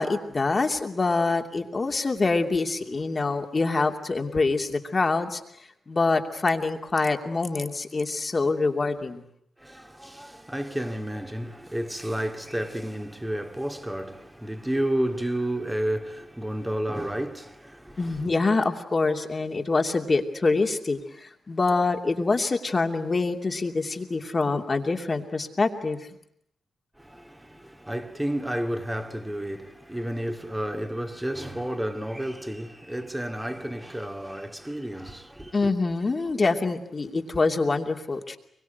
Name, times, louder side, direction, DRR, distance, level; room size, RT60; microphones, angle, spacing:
voice 1, 0.0-5.4 5.9-9.2 18.0-26.0 35.5-38.4, left 3 dB, 40° left, 2.8 m, -25 dB
voice 2, 9.6-18.4 27.0-35.7, right 1 dB, 10° right, 2.4 m, -31 dB
24.0 x 23.0 x 9.3 m
cardioid pair, 65°, 0 cm